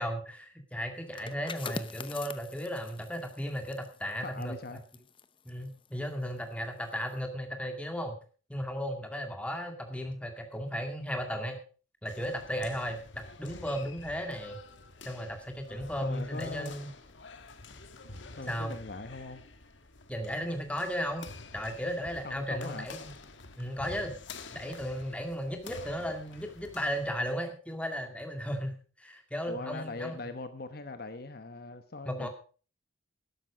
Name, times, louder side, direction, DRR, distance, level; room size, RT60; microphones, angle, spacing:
voice 1, 0.0-4.8 5.5-8.1 8.5-11.6 12.0-13.0 13.4-14.6 15.0-16.9 18.5-18.8 20.1-21.2 21.5-23.1 23.6-24.1 24.5-30.2 32.1-32.3, equal, 5° left, 2.1 m, -35 dB
sound 1, 1.0-6.5 6.9-7.2, left 4 dB, 25° left, 0.7 m, -44 dB
voice 2, 4.2-4.8 16.0-16.8 18.4-19.4 22.2-22.9 29.4-32.3, left 3 dB, 50° left, 1.0 m, -41 dB
sound 2, 12.1-27.3, left 3 dB, 70° left, 1.6 m, -49 dB
12.5 x 12.0 x 4.9 m
head